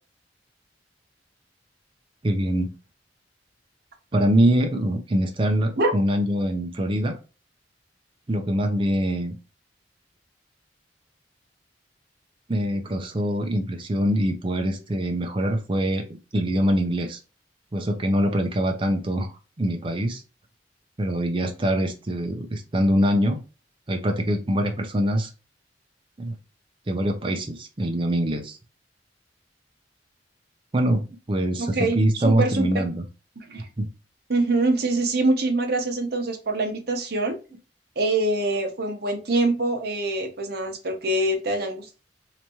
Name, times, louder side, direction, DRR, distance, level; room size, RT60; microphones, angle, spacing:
voice 1, 2.2-2.7 4.1-7.2 8.3-9.4 12.5-17.2 17.7-19.3 19.6-20.2 21.0-23.4 23.9-25.3 26.2-26.4 26.9-28.6 30.7-33.0 33.8-33.9, equal, 30° right, 4 dB, 0.6 m, -24 dB
voice 2, 31.6-32.8 33.4-33.7 34.3-37.4 38.0-41.9, right 2 dB, 60° right, 4 dB, 0.9 m, -24 dB
3.4 x 2.9 x 2.9 m, 0.32 s
head